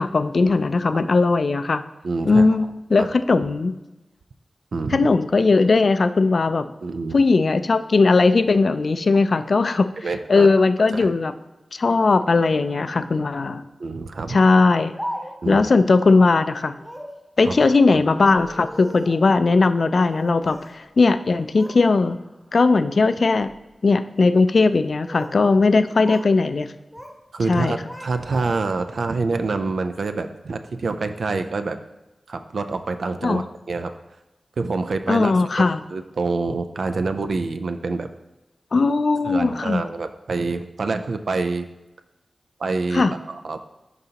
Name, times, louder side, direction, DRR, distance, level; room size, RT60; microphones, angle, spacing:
voice 1, 0.0-1.8 2.3-3.7 4.9-6.7 7.1-9.9 10.3-11.3 11.7-13.6 14.3-14.9 15.5-16.7 17.4-22.2 22.5-23.5 23.8-26.7 27.5-27.8 33.2-33.4 35.1-35.8 38.7-39.8 42.9-43.1, left 3 dB, 65° left, 11 dB, 0.3 m, -18 dB
voice 2, 2.0-2.5 3.0-3.1 4.7-5.1 6.8-7.2 10.0-10.5 10.9-11.1 13.8-14.4 15.4-15.6 17.4-18.0 27.3-31.8 32.3-33.9 34.6-38.1 39.2-41.7 42.6-43.6, right 3 dB, 85° right, 8 dB, 0.4 m, -26 dB
Speech, 14.5-15.6 16.8-17.2 18.2-19.3 20.0-20.8 21.1-21.8 22.2-22.6 23.2-23.6 24.7-25.4 25.7-26.3 26.6-27.2 27.5-28.8, equal, ahead, 0.9 m, -38 dB
10.5 x 3.9 x 2.8 m, 1.0 s
wide cardioid pair, 70°, 0 cm